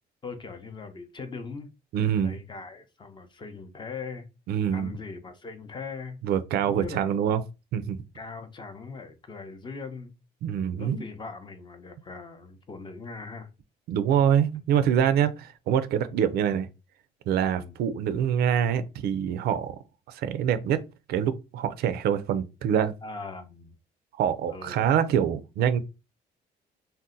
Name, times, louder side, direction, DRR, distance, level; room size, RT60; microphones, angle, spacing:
voice 1, 0.2-1.7 2.2-4.3 4.7-6.2 6.6-7.1 8.1-10.1 10.7-13.5 17.6-17.7 23.0-23.8 24.5-24.8, left 4 dB, 25° left, 0.6 m, -40 dB
voice 2, 1.9-2.4 4.5-4.9 6.2-7.4 7.7-8.0 10.4-11.0 13.9-16.7 17.3-19.8 20.1-20.8 21.1-22.9 24.2-25.8, right 9 dB, 70° right, 0.4 m, -25 dB
2.7 x 2.1 x 3.7 m
cardioid pair, 110°, 17 cm